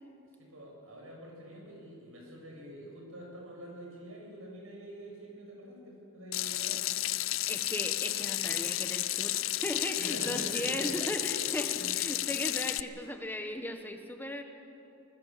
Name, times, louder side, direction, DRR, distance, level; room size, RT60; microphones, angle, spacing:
voice 1, 0.4-6.8 9.9-10.9 11.7-11.9, right 1 dB, 70° right, -1 dB, 7.4 m, -45 dB
Water tap faucet / Sink (filling or washing), 6.3-12.8, left 15 dB, 65° left, 0.6 m, -32 dB
voice 2, 7.5-14.4, left 1 dB, 10° left, 5 dB, 1.4 m, -37 dB
24.0 x 21.0 x 7.5 m, 2.8 s
head